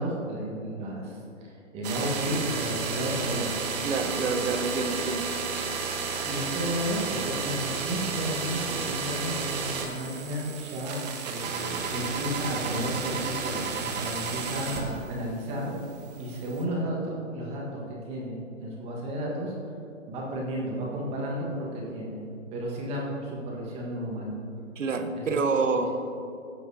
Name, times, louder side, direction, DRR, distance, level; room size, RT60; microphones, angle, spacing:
voice 1, 0.0-3.5 4.2-4.5 6.2-15.7 16.2-19.5 20.1-22.2 22.5-24.3 25.2-25.4, equal, 15° right, -3 dB, 1.5 m, -33 dB
sound 1, 1.8-15.3 15.6-16.6, right 5 dB, 30° right, 1.1 m, -32 dB
voice 2, 3.8-5.3 24.8-25.9, right 4 dB, 75° right, 7 dB, 1.1 m, -27 dB
16.0 x 7.6 x 2.8 m, 2.7 s
hypercardioid pair, 145°, 39 cm